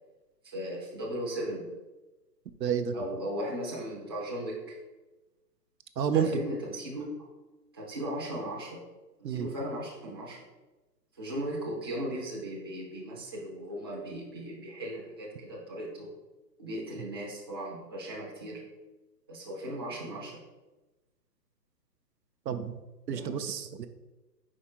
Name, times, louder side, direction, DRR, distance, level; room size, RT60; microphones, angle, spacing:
voice 1, 0.4-1.7 2.9-4.8 6.1-7.2 7.7-8.8 9.2-10.4 11.1-16.1 16.6-18.6 19.3-20.4 23.1-23.4, equal, 15° right, -7 dB, 0.5 m, -37 dB
voice 2, 2.6-2.9 6.0-6.3 9.2-9.5 22.5-22.8 23.1-23.9, right 8 dB, 75° right, 9 dB, 0.7 m, -29 dB
4.9 x 4.6 x 4.4 m, 1.1 s
hypercardioid pair, 160°, 50 cm